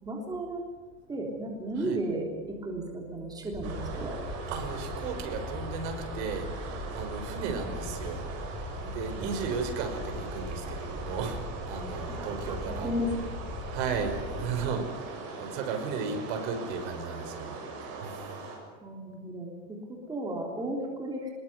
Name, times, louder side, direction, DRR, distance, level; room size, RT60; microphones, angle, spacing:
voice 1, 0.0-0.6 1.1-4.2 7.5-7.6 9.2-9.3 12.1-13.3 18.8-21.3, right 1 dB, 10° right, 0 dB, 3.7 m, -34 dB
sound 1, 3.5-14.7, left 2 dB, 15° left, 7.0 m, -39 dB
sound 2, 3.6-18.6, right 4 dB, 40° right, 7.3 m, -41 dB
voice 2, 4.5-8.5 8.8-11.4 11.7-12.9 13.7-18.2, right 5 dB, 65° right, 6 dB, 5.6 m, -35 dB
26.0 x 21.5 x 8.1 m, 1.5 s
supercardioid pair, 165°, 38 cm